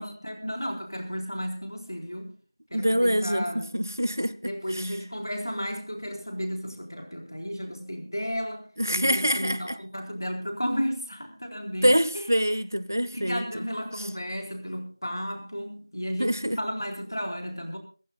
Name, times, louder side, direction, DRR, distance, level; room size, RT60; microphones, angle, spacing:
voice 1, 0.0-2.3 2.7-3.6 4.4-8.6 8.9-12.3 13.1-17.8, equal, 55° left, 4.0 m, -33 dB
voice 2, 2.7-5.0 8.8-9.8 11.8-13.7 14.0-14.1 16.2-16.6, equal, 45° right, 0.7 m, -25 dB
26.5 x 15.0 x 2.3 m
figure-of-eight pair, 180°, 2 cm